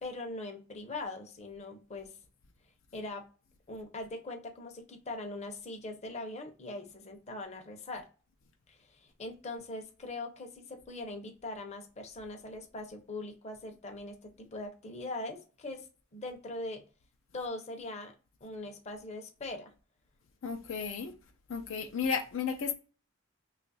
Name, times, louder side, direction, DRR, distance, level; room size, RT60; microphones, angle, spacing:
voice 1, 0.0-2.1 2.9-3.2 3.7-8.1 8.7-15.9 16.1-16.8 17.3-18.1 18.4-19.7, left 2 dB, 35° left, 0.7 m, -41 dB
voice 2, 20.4-21.1 21.5-22.7, left 6 dB, 70° left, 0.5 m, -33 dB
3.0 x 2.4 x 4.0 m
head